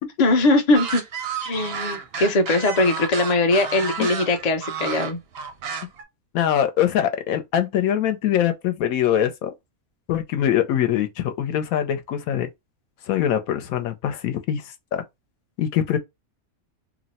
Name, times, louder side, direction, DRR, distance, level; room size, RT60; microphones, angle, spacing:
voice 1, 0.2-1.0 1.4-5.2, left 2 dB, 50° left, 0.5 m, -20 dB
sound 1, 0.7-6.0, right 6 dB, 55° right, 0.7 m, -31 dB
voice 2, 6.3-9.5 10.1-12.5 13.1-14.6 14.9-15.0 15.6-16.0, left 10 dB, 80° left, 1.0 m, -23 dB
2.9 x 2.0 x 4.0 m
omnidirectional pair, 1.5 m